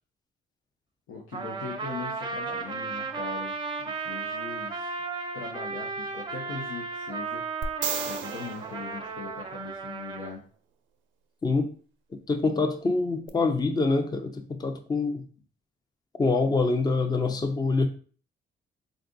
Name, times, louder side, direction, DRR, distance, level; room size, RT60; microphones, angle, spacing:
voice 1, 1.1-3.6 3.9-5.0 5.3-7.4 8.0-10.4, left 4 dB, 85° left, 0.8 m, -40 dB
Trumpet, 1.3-10.3, right 4 dB, 25° right, 0.6 m, -34 dB
sound 1, 7.6-9.9 13.3-13.4, right 8 dB, 80° right, 0.5 m, -35 dB
voice 2, 12.3-15.2 16.2-17.9, left 3 dB, 20° left, 0.5 m, -25 dB
3.8 x 2.4 x 3.8 m
cardioid pair, 90°, 20 cm